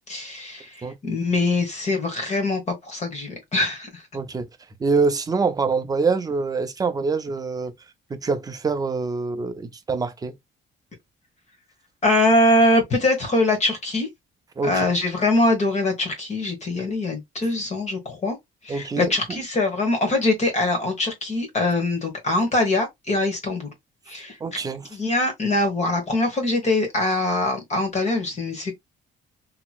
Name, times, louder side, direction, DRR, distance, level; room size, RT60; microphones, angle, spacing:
voice 1, 0.1-4.0 12.0-14.1 14.6-18.4 18.6-23.7 24.1-24.4 24.9-28.7, left 2 dB, 35° left, 1.2 m, -23 dB
voice 2, 4.1-4.5 4.8-7.7 8.1-10.3 14.6-14.9 18.7-19.1 24.4-24.9, right 4 dB, 20° right, 0.4 m, -25 dB
2.9 x 2.9 x 2.3 m
cardioid pair, 145°, 20 cm